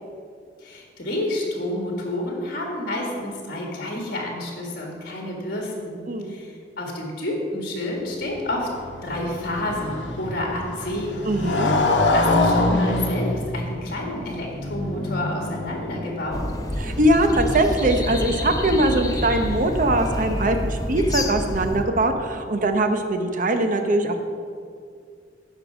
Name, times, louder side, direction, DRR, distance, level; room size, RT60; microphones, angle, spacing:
voice 1, 0.6-8.7 9.0-11.2 12.1-16.5, left 1 dB, 55° left, -1 dB, 1.7 m, -29 dB
Motorcycle, 8.3-16.4, left 2 dB, 80° left, 1.0 m, -25 dB
voice 2, 11.2-11.8 16.8-24.3, right 1 dB, 50° right, 6 dB, 0.8 m, -21 dB
sound 1, 16.3-21.8, left 1 dB, 20° left, 0.7 m, -28 dB
9.2 x 5.4 x 6.1 m, 2.3 s
head